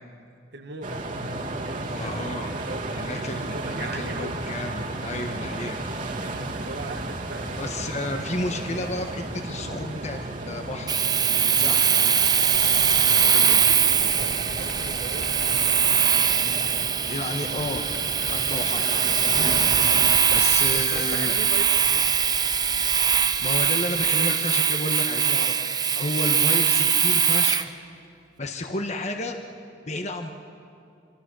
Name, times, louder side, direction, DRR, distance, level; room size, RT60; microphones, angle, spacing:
voice 1, 0.5-1.0 1.6-4.4 6.5-7.7 13.3-15.7 20.7-22.1, right 2 dB, 65° right, 7 dB, 1.3 m, -39 dB
sound 1, 0.8-20.2, right 2 dB, 45° right, 2.1 m, -34 dB
voice 2, 1.9-2.5 2.9-5.8 7.6-11.1 11.3-12.2 13.1-13.6 17.1-17.8 18.2-19.5 20.0-21.3 23.1-27.6 28.4-29.4 29.9-30.3, left 2 dB, 40° left, 4 dB, 1.2 m, -32 dB
Domestic sounds home sounds, 10.9-27.7, right 7 dB, 20° right, 0.7 m, -22 dB
sound 2, 12.2-24.6, equal, 10° left, 3.1 m, -43 dB
26.0 x 25.5 x 6.2 m, 2.5 s
head